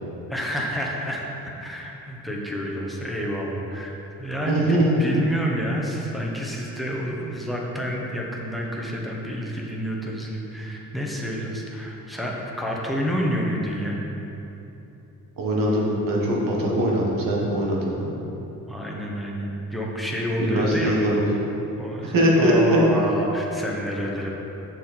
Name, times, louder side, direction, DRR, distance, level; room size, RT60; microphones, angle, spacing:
voice 1, 0.3-14.0 18.7-21.2 21.8-24.3, equal, ahead, -3 dB, 1.0 m, -29 dB
voice 2, 4.5-4.9 15.4-18.1 20.4-21.2 22.0-22.8, right 1 dB, 80° right, -3 dB, 1.6 m, -22 dB
7.3 x 6.3 x 4.4 m, 3.0 s
cardioid pair, 135°, 33 cm